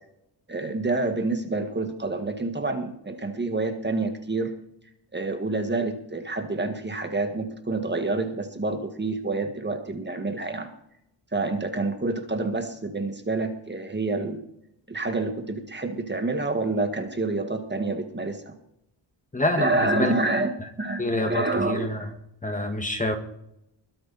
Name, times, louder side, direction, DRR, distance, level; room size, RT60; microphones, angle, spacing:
voice 1, 0.5-4.5 5.1-10.7 11.3-14.4 14.9-18.5 19.6-20.5 20.8-22.1, right 2 dB, 25° right, 6 dB, 1.7 m, -28 dB
voice 2, 19.3-20.1 20.6-20.7 21.0-22.1 22.4-23.2, left 1 dB, 15° left, 5 dB, 1.7 m, -27 dB
22.0 x 9.8 x 4.1 m, 0.78 s
wide cardioid pair, 135°, 45 cm